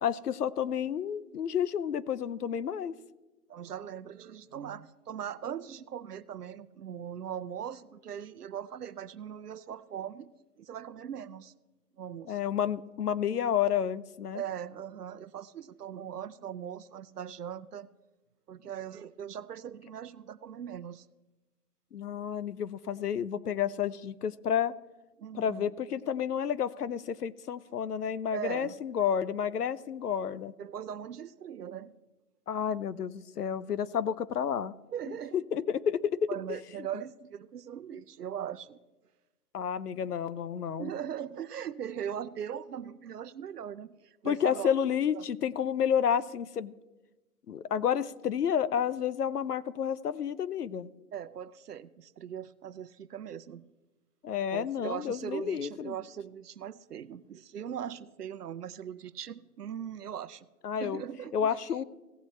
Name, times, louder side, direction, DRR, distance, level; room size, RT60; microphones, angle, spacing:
voice 1, 0.0-2.9 12.3-14.4 21.9-24.8 25.3-30.5 32.5-34.7 35.3-36.6 39.5-40.9 44.2-46.7 47.5-50.9 54.2-55.9 60.6-61.0 61.3-61.8, left 8 dB, 85° left, 17 dB, 0.7 m, -30 dB
voice 2, 3.5-10.3 10.6-11.5 12.0-12.4 14.3-17.9 18.5-21.1 25.2-25.7 28.3-28.8 30.6-32.0 34.9-35.4 36.3-38.8 40.8-44.7 45.1-45.3 51.1-53.7 54.5-60.5 60.8-61.5, right 9 dB, 85° right, 16 dB, 0.7 m, -40 dB
17.0 x 7.7 x 3.1 m, 1.1 s
hypercardioid pair, 175°, 45 cm